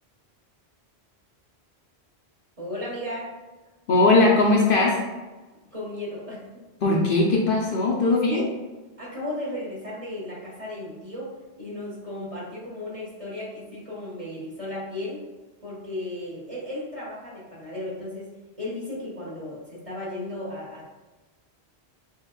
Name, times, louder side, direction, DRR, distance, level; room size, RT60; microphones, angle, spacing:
voice 1, 2.6-3.3 5.7-6.4 8.1-8.5 9.0-11.3 11.6-15.2 15.6-18.3 18.6-20.8, left 1 dB, 35° right, -7 dB, 1.6 m, -35 dB
voice 2, 3.9-5.0 6.8-8.4, left 2 dB, 60° left, -2 dB, 0.8 m, -19 dB
6.2 x 2.4 x 2.3 m, 1.2 s
omnidirectional pair, 1.1 m